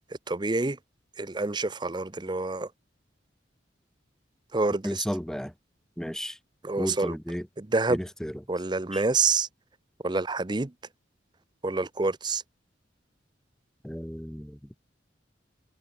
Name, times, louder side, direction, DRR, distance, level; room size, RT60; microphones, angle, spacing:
voice 1, 0.3-0.8 1.2-2.7 4.5-5.1 6.6-7.2 7.6-8.0 8.5-9.5 10.0-10.7 11.6-12.4, right 3 dB, 25° right, 0.6 m, -27 dB
voice 2, 4.8-5.5 6.0-6.4 6.8-7.4 7.9-8.3 8.9-9.0 13.8-14.6, equal, 5° left, 1.1 m, -33 dB
head